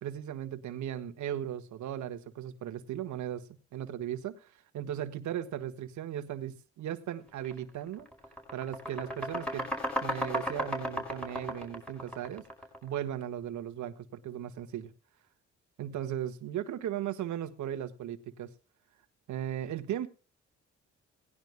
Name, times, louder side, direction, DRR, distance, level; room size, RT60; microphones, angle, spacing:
voice 1, 0.0-8.1 8.5-9.7 10.0-12.4 12.8-14.9 15.8-18.5 19.3-20.1, right 10 dB, 70° right, 10 dB, 1.4 m, -37 dB
sound 1, 7.4-7.6 7.9-12.9, equal, 5° left, 5.0 m, -35 dB
18.5 x 11.0 x 2.2 m, 0.34 s
cardioid pair, 90°, 30 cm